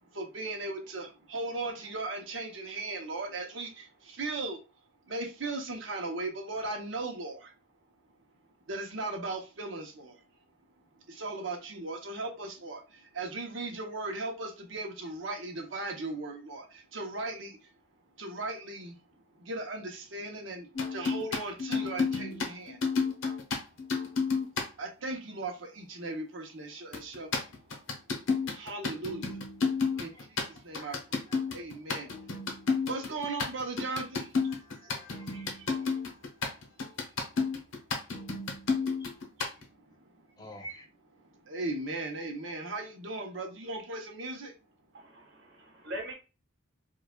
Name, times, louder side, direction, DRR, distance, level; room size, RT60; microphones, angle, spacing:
voice 1, 0.1-4.6 5.1-7.5 8.7-10.2 11.1-17.7 18.2-19.0 19.3-22.8 24.8-27.6 28.5-29.4 29.7-34.4 34.8-36.0 37.0-37.1 39.4-39.9 41.2-44.5, right 2 dB, 75° right, 0.9 m, -38 dB
sound 1, 20.7-24.7 26.9-39.6, left 4 dB, 90° left, 0.9 m, -31 dB
voice 2, 29.9-30.3 30.8-31.0 31.3-31.4 34.5-36.8 39.0-39.1 40.4-40.9, right 1 dB, 20° left, 0.6 m, -51 dB
voice 3, 44.9-46.1, right 1 dB, 60° right, 1.1 m, -41 dB
4.6 x 2.4 x 2.3 m
head